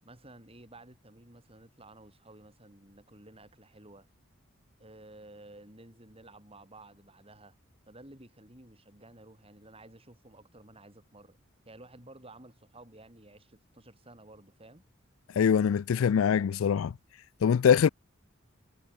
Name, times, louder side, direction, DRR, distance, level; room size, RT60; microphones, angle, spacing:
voice 1, 0.0-4.1 4.8-7.6 7.9-11.4 11.6-14.9, right 2 dB, 30° right, 7.7 m, -53 dB
voice 2, 15.4-16.9 17.4-17.9, left 7 dB, 75° left, 0.4 m, -23 dB
head